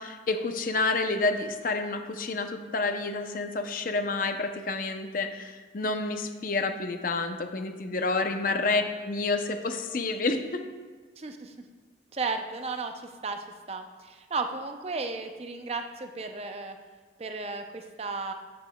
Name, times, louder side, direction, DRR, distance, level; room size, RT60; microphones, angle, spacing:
voice 1, 0.0-10.6, left 3 dB, 50° left, 6 dB, 0.5 m, -29 dB
voice 2, 11.2-11.5 12.1-16.8 17.2-18.3, right 3 dB, 35° right, 6 dB, 0.5 m, -34 dB
8.4 x 8.2 x 2.2 m, 1.4 s
head